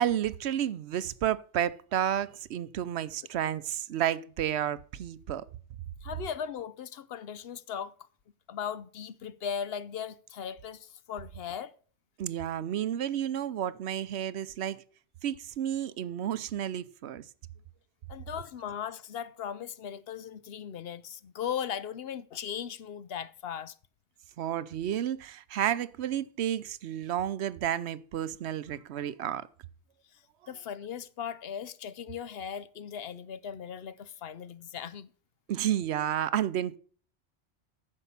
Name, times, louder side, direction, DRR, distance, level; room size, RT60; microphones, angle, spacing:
voice 1, 0.0-5.4 12.2-14.8 15.2-17.2 24.4-29.5 35.5-36.8, right 10 dB, 75° right, 0.9 m, -31 dB
voice 2, 6.0-7.9 8.5-11.7 18.1-23.7 30.5-35.1, left 8 dB, 65° left, 0.8 m, -38 dB
9.9 x 6.6 x 5.6 m
omnidirectional pair, 1.1 m